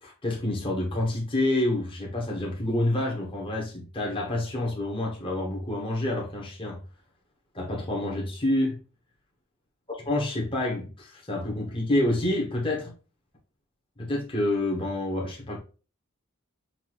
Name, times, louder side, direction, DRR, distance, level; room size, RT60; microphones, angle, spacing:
voice 1, 0.0-6.8 7.5-8.8 9.9-12.9 14.0-15.6, left 1 dB, 25° left, 1.2 m, -28 dB
5.8 x 2.7 x 3.0 m
head